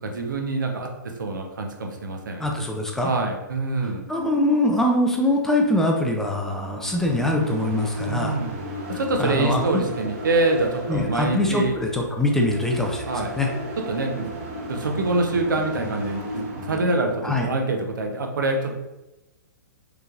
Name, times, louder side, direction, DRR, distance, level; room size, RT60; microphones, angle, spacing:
voice 1, 0.0-0.9 1.2-2.4 3.0-4.0 8.1-8.5 8.9-11.7 13.1-13.3 13.9-14.3 14.7-18.7, right 2 dB, 90° right, 3 dB, 0.8 m, -25 dB
voice 2, 2.4-3.1 3.8-8.3 9.2-9.8 10.9-13.0 13.4-13.5 17.2-17.5, left 1 dB, 5° left, 1 dB, 0.4 m, -23 dB
sound 1, 6.3-17.4, equal, 40° right, 1.0 m, -35 dB
4.8 x 3.3 x 2.5 m, 0.99 s
hypercardioid pair, 145°, 10 cm